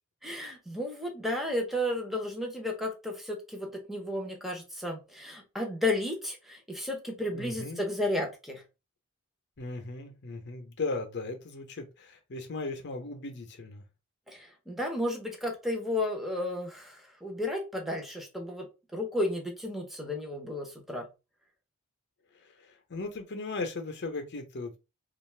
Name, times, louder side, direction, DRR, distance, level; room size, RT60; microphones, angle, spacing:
voice 1, 0.2-8.6 14.3-21.1, left 1 dB, ahead, 0.7 m, -33 dB
voice 2, 7.3-7.8 9.6-13.8 22.6-24.8, left 3 dB, 50° left, 0.7 m, -37 dB
2.5 x 2.3 x 3.2 m
head